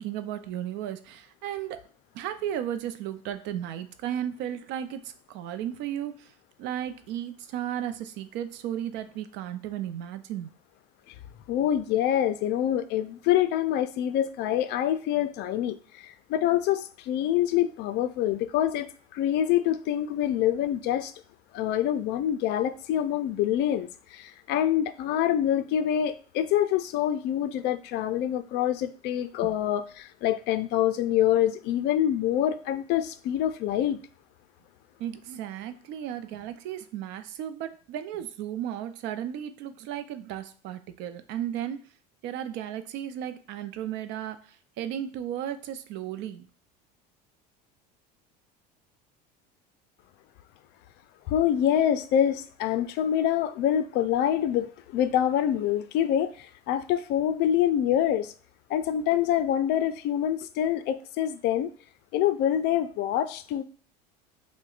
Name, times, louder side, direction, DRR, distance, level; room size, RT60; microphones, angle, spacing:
voice 1, 0.0-1.8 2.1-5.0 5.3-6.3 6.6-10.5 29.4-29.6 35.0-41.8 42.2-46.5, right 10 dB, 60° right, 10 dB, 0.5 m, -34 dB
voice 2, 11.5-21.1 21.5-34.0 51.3-58.3 58.7-61.7 62.1-63.6, left 11 dB, 55° left, 11 dB, 0.4 m, -26 dB
5.8 x 2.2 x 2.4 m, 0.43 s
supercardioid pair, 105°, 21 cm